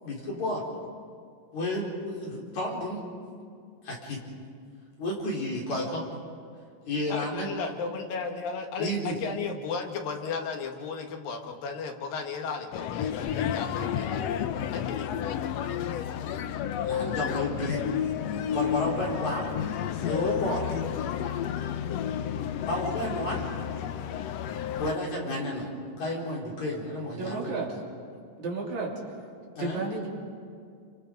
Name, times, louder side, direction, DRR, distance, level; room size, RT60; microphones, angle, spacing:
voice 1, 0.0-0.6 1.5-3.0 3.8-4.2 5.0-6.0 6.9-7.5 8.8-9.2 16.8-17.8 18.5-19.5 20.0-20.7 22.6-23.4 24.8-25.7 26.0-27.5 29.6-29.8, left 1 dB, 50° left, -2 dB, 5.3 m, -31 dB
voice 2, 7.1-14.2 14.7-15.0, left 5 dB, 75° left, 3 dB, 3.3 m, -35 dB
sound 1, 12.7-24.9, left 9 dB, 90° left, 1.4 m, -31 dB
voice 3, 27.1-27.8 28.4-28.9 29.6-30.1, right 3 dB, 55° right, -2 dB, 4.4 m, -32 dB
29.0 x 25.5 x 5.3 m, 2.3 s
omnidirectional pair, 4.1 m